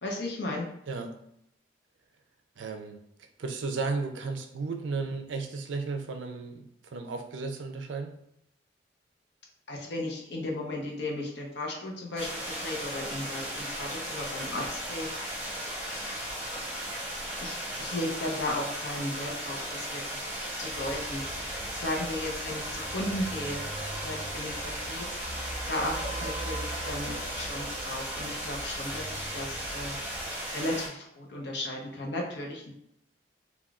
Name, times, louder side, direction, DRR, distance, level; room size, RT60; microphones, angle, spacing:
voice 1, 0.0-0.7 9.7-12.3 12.6-15.4 15.9-16.4 17.4-20.3 20.6-23.6 24.0-24.5 24.8-25.0 25.3-30.0 30.5-32.7, left 1 dB, 65° left, 0 dB, 0.7 m, -35 dB
voice 2, 2.6-3.0 3.4-8.1, right 4 dB, 80° right, 5 dB, 0.4 m, -34 dB
sound 1, 12.2-30.9, equal, 10° right, 0.8 m, -36 dB
sound 2, 20.7-30.3, right 1 dB, 20° left, 1.1 m, -42 dB
3.5 x 2.3 x 2.3 m, 0.76 s
head